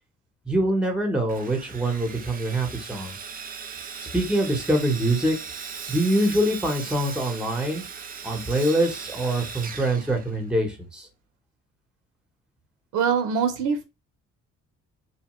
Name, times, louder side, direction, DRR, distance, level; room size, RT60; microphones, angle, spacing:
voice 1, 0.5-3.1 4.1-5.4 5.9-7.8 8.2-11.1, right 1 dB, 5° right, 3 dB, 0.9 m, -24 dB
Sawing, 1.3-10.7, right 6 dB, 30° right, 0.4 m, -38 dB
voice 2, 12.9-13.8, right 6 dB, 85° right, 7 dB, 0.6 m, -23 dB
2.8 x 2.1 x 3.0 m, 0.27 s
cardioid pair, 90°, 30 cm